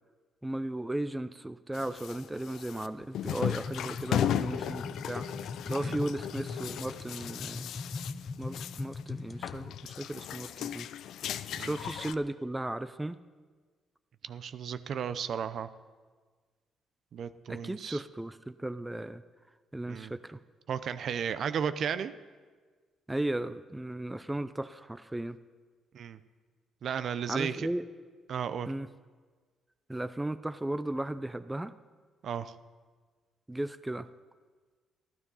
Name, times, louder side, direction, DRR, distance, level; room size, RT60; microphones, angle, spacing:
voice 1, 0.4-5.3 5.7-7.7 8.4-10.9 11.6-13.2 17.5-19.2 19.7-20.4 23.1-25.4 27.3-27.8 28.7-28.9 29.9-31.7 33.5-34.1, right 1 dB, 10° right, 12 dB, 0.5 m, -35 dB
sound 1, 1.7-9.0 9.3-12.1, left 11 dB, 75° left, 0.4 m, -36 dB
sound 2, 3.2-9.6, left 4 dB, 35° left, 0.8 m, -40 dB
voice 2, 14.2-15.7 17.1-18.0 19.9-20.1 20.7-22.1 25.9-26.2 26.8-27.7 28.3-28.7 32.2-32.5, right 7 dB, 60° right, 12 dB, 0.6 m, -34 dB
13.5 x 12.0 x 5.6 m, 1.5 s
cardioid pair, 90°, 0 cm